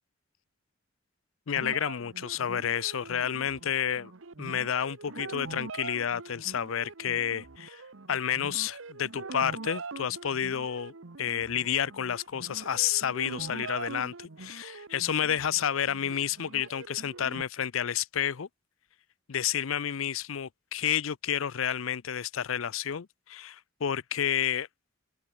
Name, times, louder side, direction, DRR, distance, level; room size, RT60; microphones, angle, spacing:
voice 1, 1.5-4.1 4.4-7.8 8.1-10.9 11.2-18.5 19.3-24.7, left 9 dB, 75° left, 0.6 m, -30 dB
sound 1, 1.6-17.4, right 3 dB, 70° right, 1.1 m, -43 dB
open air
head